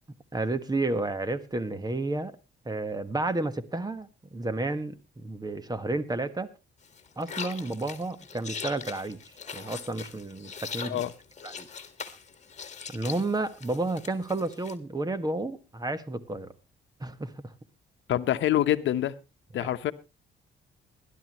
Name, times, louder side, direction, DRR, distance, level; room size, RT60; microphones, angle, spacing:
voice 1, 0.3-2.4 2.6-6.5 7.2-11.0 11.4-11.7 12.9-16.5 17.0-17.5 19.6-19.7, right 2 dB, 20° right, 1.4 m, -31 dB
sound 1, 6.8-14.8, left 6 dB, 35° left, 1.8 m, -41 dB
voice 2, 18.1-19.1 19.5-19.9, left 12 dB, 70° left, 1.0 m, -25 dB
20.0 x 11.5 x 3.1 m
cardioid pair, 90°, 20 cm